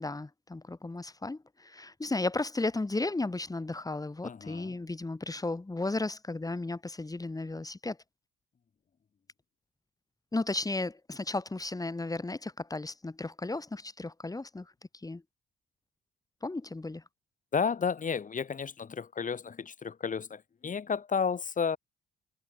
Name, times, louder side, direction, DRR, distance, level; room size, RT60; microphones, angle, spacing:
voice 1, 0.0-8.0 10.3-14.7 15.0-15.2 16.4-17.0, left 2 dB, 20° left, 6.1 m, -34 dB
voice 2, 4.2-4.8 17.5-21.8, left 6 dB, 40° left, 3.4 m, -32 dB
cardioid pair, 90°, 20 cm